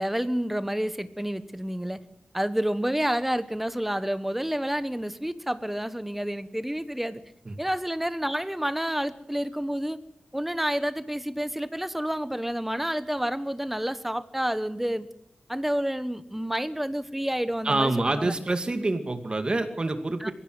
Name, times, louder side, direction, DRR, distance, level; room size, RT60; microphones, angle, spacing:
voice 1, 0.0-2.0 2.3-7.2 7.6-10.0 10.3-15.1 15.5-18.3 20.2-20.3, equal, 5° right, 13 dB, 1.1 m, -29 dB
voice 2, 17.6-20.3, right 2 dB, 30° right, 7 dB, 2.4 m, -26 dB
22.5 x 16.0 x 7.8 m, 0.74 s
wide cardioid pair, 130°, 3 cm